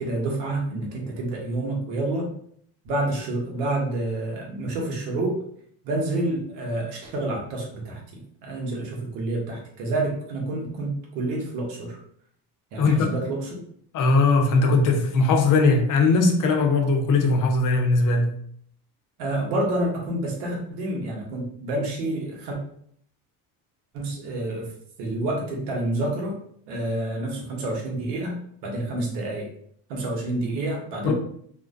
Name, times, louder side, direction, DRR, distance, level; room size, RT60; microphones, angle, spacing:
voice 1, 0.0-2.3 2.8-5.4 5.8-12.0 12.7-13.6 19.2-22.6 23.9-24.7 25.0-26.3 26.7-29.5 29.9-31.1, right 2 dB, 85° right, 0.9 m, -28 dB
voice 2, 12.8-13.1 13.9-18.3 31.0-31.1, left 3 dB, 45° left, 0.6 m, -19 dB
2.4 x 2.1 x 2.4 m
supercardioid pair, 80°, 44 cm